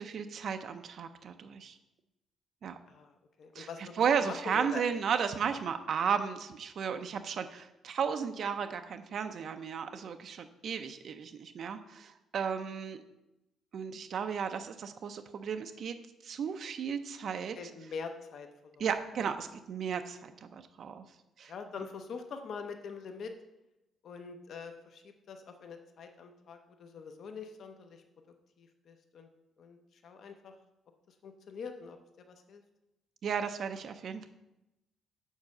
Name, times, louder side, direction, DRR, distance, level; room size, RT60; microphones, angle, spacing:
voice 1, 0.0-1.8 2.6-2.8 3.5-13.0 13.7-16.0 16.2-17.6 18.8-21.0 21.4-21.5 33.2-34.3, right 7 dB, 45° right, 8 dB, 0.4 m, -34 dB
voice 2, 3.4-3.9 4.2-4.8 17.5-18.9 21.5-23.3 24.0-28.0 28.6-29.3 29.6-29.8 30.0-30.5 31.2-32.0 32.3-32.6, left 5 dB, 45° left, 6 dB, 0.7 m, -44 dB
7.3 x 4.7 x 6.4 m, 0.92 s
cardioid pair, 180°, 0 cm